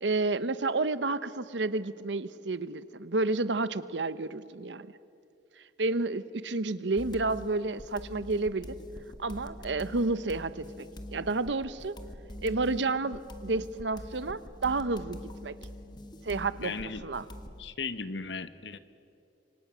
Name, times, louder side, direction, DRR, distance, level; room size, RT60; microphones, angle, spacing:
voice 1, 0.0-4.9 5.8-8.8 9.2-12.0 12.4-15.6 16.2-16.7 17.0-17.3, right 3 dB, 80° right, 15 dB, 0.8 m, -30 dB
sound 1, 7.0-17.6, left 1 dB, 25° left, 1.4 m, -45 dB
voice 2, 16.6-17.0 17.6-18.8, left 4 dB, 75° left, 13 dB, 1.1 m, -36 dB
27.0 x 24.5 x 6.3 m, 2.8 s
head